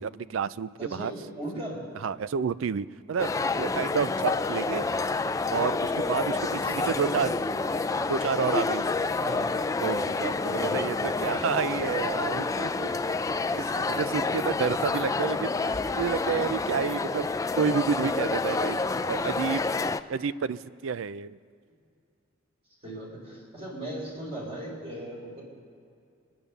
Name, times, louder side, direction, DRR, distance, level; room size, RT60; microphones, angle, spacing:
voice 1, 0.0-1.1 2.0-3.3 3.6-4.9 5.5-6.4 6.7-7.3 8.1-8.9 9.8-12.9 13.5-15.7 16.0-17.3 17.6-18.8 19.1-19.6 20.1-21.4, right 6 dB, 80° right, 17 dB, 0.4 m, -30 dB
voice 2, 0.8-1.9 4.3-4.4 6.3-7.6 8.7-8.9 9.2-9.5 10.5-10.8 22.8-25.4, right 1 dB, 30° right, -3 dB, 3.6 m, -38 dB
sound 1, 3.2-20.0, left 3 dB, 15° left, 0.3 m, -28 dB
24.5 x 8.7 x 6.7 m, 2.4 s
head